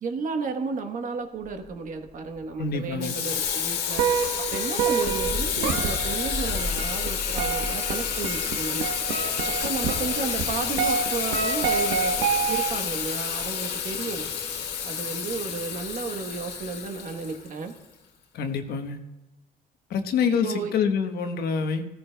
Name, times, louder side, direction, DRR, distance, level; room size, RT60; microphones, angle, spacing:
voice 1, 0.0-4.1 4.5-8.9 9.6-12.2 12.5-14.3 14.8-17.7 20.4-20.7, right 4 dB, 50° right, 6 dB, 1.1 m, -33 dB
Thunder, 1.4-17.1, equal, 30° right, 4.0 m, -41 dB
voice 2, 2.6-3.2 18.3-19.0 19.9-21.8, left 6 dB, 65° left, 6 dB, 1.1 m, -26 dB
Water tap faucet / Sink (filling or washing), 3.0-17.8, left 7 dB, 90° left, 1.6 m, -30 dB
sound 1, 3.9-12.9, right 7 dB, 90° right, 0.9 m, -28 dB
16.0 x 14.0 x 2.3 m, 1.1 s
cardioid pair, 110°, 17 cm